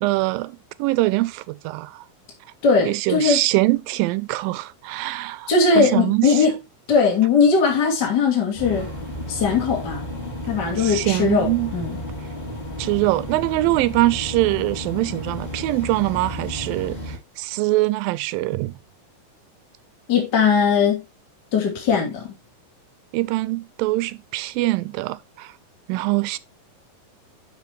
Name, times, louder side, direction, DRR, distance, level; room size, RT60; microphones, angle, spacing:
voice 1, 0.0-2.0 2.8-5.5 5.8-6.5 10.8-11.7 12.8-18.8 23.1-25.5 25.9-26.4, right 19 dB, 85° right, 2.3 m, -23 dB
voice 2, 2.6-3.4 5.5-6.5 6.9-8.9 9.3-10.1 10.5-12.0 20.1-21.0 21.5-22.3, left 5 dB, 35° left, 2.5 m, -19 dB
sound 1, 8.5-17.1, equal, 15° left, 2.5 m, -32 dB
12.0 x 4.9 x 3.1 m
omnidirectional pair, 4.1 m